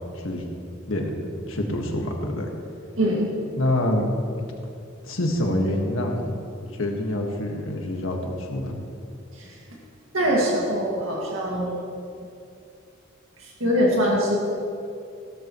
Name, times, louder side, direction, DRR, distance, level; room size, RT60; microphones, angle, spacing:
voice 1, 0.1-0.5 0.9-1.1 1.5-2.5 3.6-4.0 5.1-6.3 6.7-8.7, left 1 dB, 80° left, 1 dB, 1.6 m, -26 dB
voice 2, 3.0-3.3 9.4-9.5 10.1-11.7 13.6-14.4, equal, 85° right, -3 dB, 2.0 m, -22 dB
16.0 x 13.0 x 3.1 m, 2.5 s
head